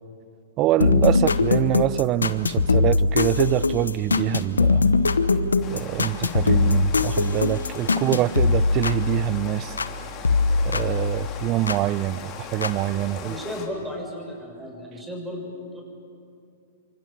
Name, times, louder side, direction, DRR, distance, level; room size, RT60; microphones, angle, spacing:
voice 1, 0.6-4.9 5.7-9.8 10.7-13.3, right 15 dB, 35° right, 21 dB, 0.6 m, -25 dB
sound 1, 0.8-10.0 10.2-11.8 12.6-12.7, left 3 dB, 90° left, 1.0 m, -22 dB
Rain, 5.6-13.7, left 6 dB, 35° left, 3.1 m, -39 dB
voice 2, 13.2-15.8, left 1 dB, 10° right, 1 dB, 6.6 m, -34 dB
27.0 x 25.0 x 7.0 m, 2.5 s
hypercardioid pair, 115°, 0 cm